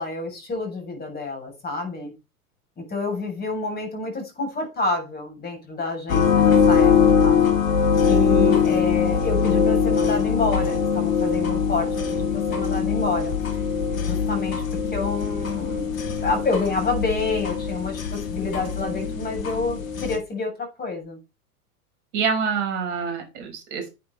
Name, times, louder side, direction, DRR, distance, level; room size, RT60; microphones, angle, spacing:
voice 1, 0.0-2.1 2.8-6.9 7.2-7.4 8.1-13.4 14.0-14.6 14.9-21.2, left 3 dB, 20° left, 2 dB, 7.3 m, -28 dB
sound 1, 6.1-20.2, left 6 dB, 60° left, 2.5 m, -22 dB
voice 2, 22.1-23.9, right 6 dB, 50° right, 4 dB, 5.2 m, -26 dB
10.5 x 8.9 x 4.8 m, 0.27 s
figure-of-eight pair, 95°, 46 cm